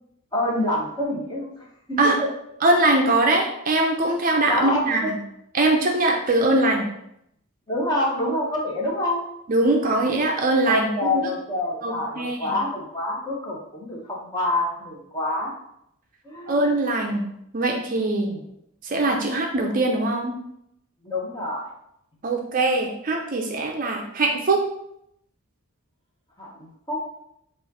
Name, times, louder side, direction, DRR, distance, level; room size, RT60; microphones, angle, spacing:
voice 1, 0.3-1.5 1.9-2.3 4.5-5.1 7.7-9.2 10.7-15.5 16.2-16.6 18.1-18.4 21.0-21.7 26.4-27.0, left 1 dB, 20° left, -3 dB, 1.0 m, -27 dB
voice 2, 2.6-5.2 5.5-6.9 9.5-11.1 11.8-12.5 16.5-17.2 17.5-18.3 18.8-20.3 22.2-24.6, right 2 dB, 40° right, 2 dB, 0.5 m, -22 dB
4.9 x 2.5 x 4.1 m, 0.77 s
head